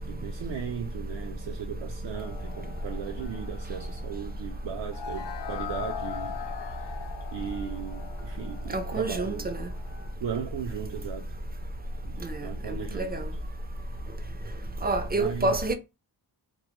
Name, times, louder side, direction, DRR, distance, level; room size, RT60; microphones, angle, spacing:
voice 1, 0.1-6.4 7.3-9.5 10.2-11.3 12.0-13.2 15.1-15.6, right 8 dB, 75° right, 0.5 m, -37 dB
sound 1, 2.1-10.2, left 9 dB, 70° left, 0.5 m, -41 dB
voice 2, 8.7-9.7 12.2-13.3 14.8-15.7, right 2 dB, 25° right, 0.3 m, -28 dB
2.1 x 2.1 x 2.9 m
wide cardioid pair, 75°, 44 cm